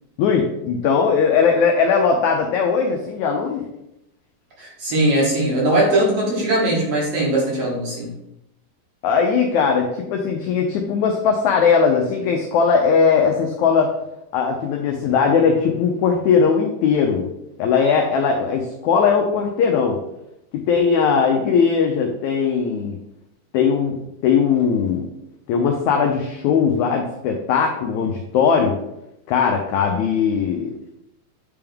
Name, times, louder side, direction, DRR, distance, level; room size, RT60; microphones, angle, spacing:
voice 1, 0.2-3.6 9.0-13.9 14.3-17.3 17.6-20.0 20.7-23.0 23.5-23.9 24.2-25.1 25.5-28.7 29.3-30.7, left 6 dB, 85° left, 2 dB, 1.6 m, -19 dB
voice 2, 4.6-8.1, right 1 dB, 55° right, -4 dB, 2.2 m, -20 dB
8.6 x 3.5 x 3.4 m, 0.85 s
omnidirectional pair, 4.1 m